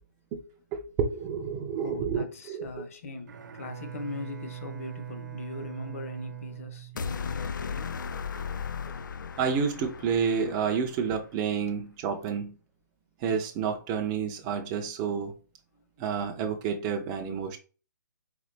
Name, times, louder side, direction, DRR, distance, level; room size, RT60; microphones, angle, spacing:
voice 1, 0.7-2.9 9.4-12.5 13.2-15.3 16.0-17.6, right 6 dB, 15° right, 0.4 m, -29 dB
voice 2, 1.8-8.0 15.7-15.8, left 3 dB, 45° left, 0.7 m, -40 dB
Bowed string instrument, 3.2-7.5, right 11 dB, 70° right, 0.8 m, -41 dB
sound 1, 7.0-11.2, left 6 dB, 80° left, 0.4 m, -36 dB
3.9 x 3.4 x 3.2 m
hypercardioid pair, 165°, 10 cm